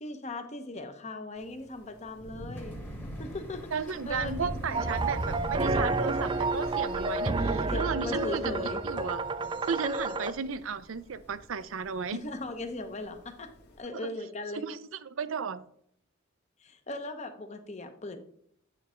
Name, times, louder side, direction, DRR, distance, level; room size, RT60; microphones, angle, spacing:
voice 1, 0.0-2.8 3.2-3.7 4.1-4.8 7.7-8.8 12.1-13.5 13.8-14.6 16.6-18.2, left 2 dB, 35° left, 7 dB, 0.8 m, -38 dB
Thunder / Rain, 1.4-13.8, equal, 55° left, 1.8 m, -42 dB
sound 1, 2.5-7.8, equal, 10° left, 1.2 m, -49 dB
voice 2, 3.7-8.5 8.8-9.2 9.7-12.2 13.9-14.0 14.5-15.6, right 6 dB, 80° right, 14 dB, 0.5 m, -34 dB
sound 2, 4.7-10.3, right 3 dB, 25° right, 0.4 m, -30 dB
9.8 x 3.3 x 5.0 m, 0.66 s
head